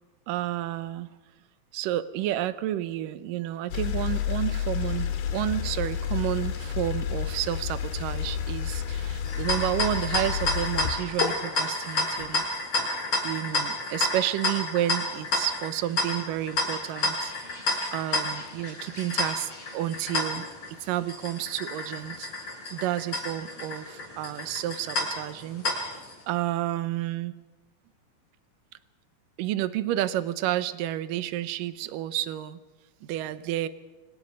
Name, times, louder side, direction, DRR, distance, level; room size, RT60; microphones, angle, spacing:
voice 1, 0.3-1.1 1.7-12.5 13.2-17.3 17.9-20.5 20.8-22.3 22.7-27.3 29.4-32.6 33.0-33.7, right 13 dB, 75° right, 13 dB, 2.3 m, -30 dB
sound 1, 3.7-12.4, left 9 dB, 75° left, 3.6 m, -30 dB
sound 2, 9.2-26.1, left 2 dB, 35° left, 5.6 m, -30 dB
27.0 x 25.5 x 5.3 m, 1.2 s
omnidirectional pair, 4.5 m